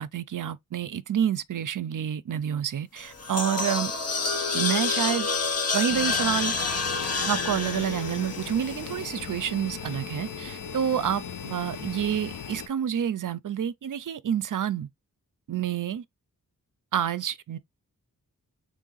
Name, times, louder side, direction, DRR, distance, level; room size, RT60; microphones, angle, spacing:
voice 1, 0.0-3.9 4.5-5.3 5.7-6.5 7.3-14.9 15.5-16.0 16.9-17.6, right 9 dB, 65° right, 0.5 m, -28 dB
sound 1, 3.0-9.3, left 4 dB, 45° left, 1.0 m, -28 dB
sound 2, 5.9-12.7, left 7 dB, 70° left, 0.7 m, -38 dB
3.6 x 3.1 x 3.9 m
wide cardioid pair, 120°, 34 cm